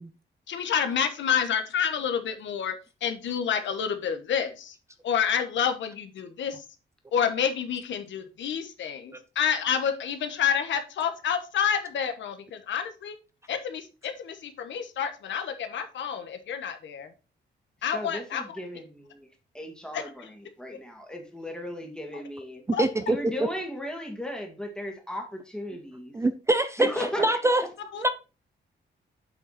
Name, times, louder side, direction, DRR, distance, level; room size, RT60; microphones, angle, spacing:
voice 1, 0.5-2.8 3.0-4.8 5.0-6.6 7.1-13.1 13.5-17.1 17.8-18.6 19.9-20.0 22.7-22.8 27.9-28.0, left 8 dB, 85° left, 1.3 m, -29 dB
voice 2, 17.9-19.3 19.5-22.6 23.1-26.2 26.8-27.3, left 1 dB, 5° left, 1.8 m, -36 dB
voice 3, 22.8-23.2 26.1-26.9 27.2-27.6 28.0-28.1, right 2 dB, 15° right, 0.5 m, -23 dB
8.0 x 5.8 x 4.2 m
wide cardioid pair, 165°, 19 cm